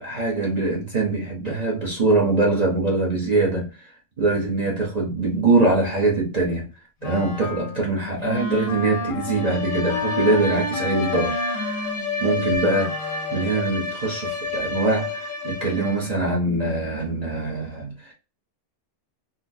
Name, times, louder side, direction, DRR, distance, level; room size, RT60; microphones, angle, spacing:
voice 1, 0.0-3.9 4.2-6.7 7.0-11.8 12.2-12.9 13.3-18.1, right 3 dB, 40° right, 0.7 m, -23 dB
Wind instrument woodwind instrument, 7.0-13.6, left 2 dB, 50° left, 0.8 m, -32 dB
Bowed string instrument, 9.1-16.2, left 4 dB, 85° left, 1.2 m, -30 dB
3.9 x 2.1 x 2.5 m
omnidirectional pair, 1.3 m